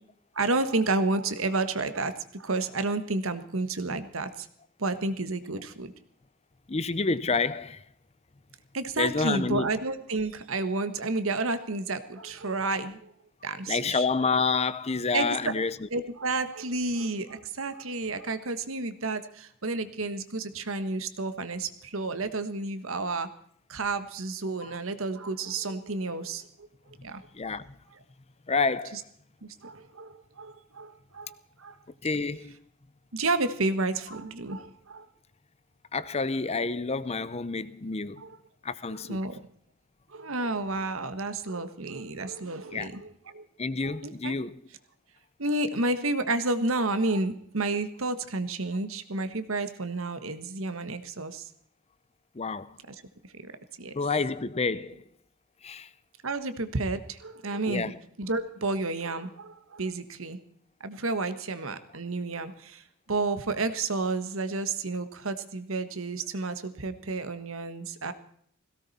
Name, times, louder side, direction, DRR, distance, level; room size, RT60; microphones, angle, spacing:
voice 1, 0.3-4.5 4.8-5.9 8.7-13.1 13.4-14.0 15.1-15.5 15.9-23.3 23.7-26.5 27.0-27.2 28.9-29.0 29.4-31.8 33.1-35.0 38.2-38.4 38.9-39.3 40.1-43.5 43.8-44.4 45.4-51.5 52.9-53.0 53.3-53.5 53.8-53.9 56.2-57.9 58.2-60.4 60.8-68.1, right 3 dB, 80° right, 1.4 m, -31 dB
voice 2, 6.7-7.8 9.0-9.7 13.5-15.9 24.6-24.8 27.3-27.7 28.5-29.0 32.0-32.6 35.9-38.2 38.6-39.2 42.7-42.9 43.6-44.5 52.4-52.8 53.9-55.0 55.6-55.9 57.7-58.0, left 4 dB, 30° left, 0.6 m, -29 dB
17.5 x 17.0 x 4.2 m
head